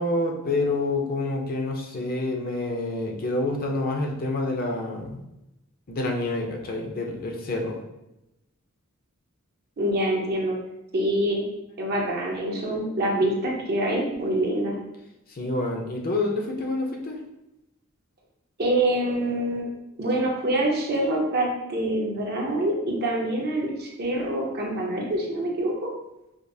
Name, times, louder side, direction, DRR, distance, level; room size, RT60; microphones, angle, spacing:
voice 1, 0.0-5.2 5.9-7.8 15.3-17.2, left 2 dB, 45° left, 1 dB, 0.6 m, -27 dB
voice 2, 9.8-10.6 10.9-11.4 11.8-14.8 18.6-19.6 20.0-25.7, right 1 dB, 50° right, -1 dB, 0.7 m, -25 dB
5.0 x 2.0 x 2.6 m, 0.89 s
head